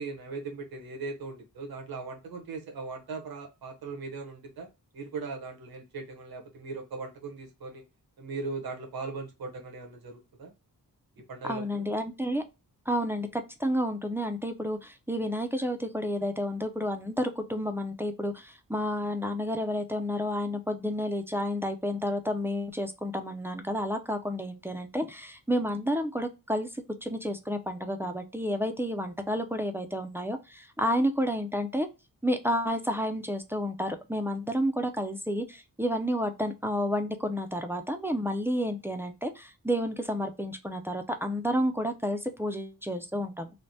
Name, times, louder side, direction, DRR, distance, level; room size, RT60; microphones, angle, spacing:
voice 1, 0.0-4.7 4.9-7.8 8.2-10.5 11.3-11.8, right 4 dB, 85° right, 2 dB, 0.9 m, -39 dB
voice 2, 11.4-12.4 12.9-26.7 27.0-31.9 32.2-43.5, equal, 5° right, 5 dB, 0.3 m, -30 dB
3.3 x 2.0 x 2.6 m, 0.26 s
wide cardioid pair, 115°, 36 cm